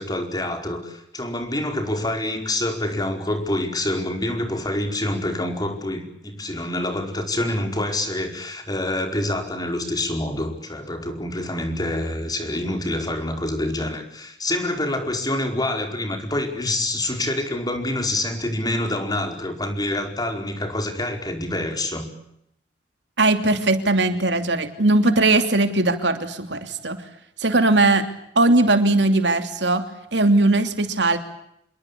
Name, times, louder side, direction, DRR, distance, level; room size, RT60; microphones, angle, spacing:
voice 1, 0.0-22.1, left 1 dB, 25° left, 5 dB, 4.9 m, -26 dB
voice 2, 23.2-27.0 27.4-28.0 28.3-29.9 30.1-31.2, right 2 dB, 85° right, 8 dB, 2.9 m, -19 dB
27.5 x 22.0 x 8.6 m, 0.75 s
head